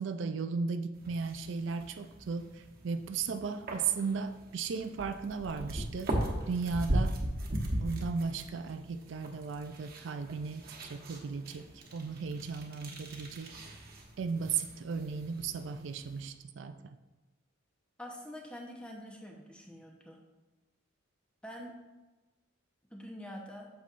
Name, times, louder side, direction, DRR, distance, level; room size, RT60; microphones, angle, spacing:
voice 1, 0.0-6.1 6.5-7.2 7.8-11.6 11.9-13.6 14.2-17.0, right 5 dB, 65° right, 9 dB, 0.4 m, -36 dB
sound 1, 0.9-16.3, right 1 dB, 45° right, 1.2 m, -39 dB
voice 2, 18.0-20.2 21.4-21.8 22.9-23.7, equal, 5° left, 0 dB, 0.9 m, -45 dB
8.2 x 7.0 x 2.5 m, 1.1 s
head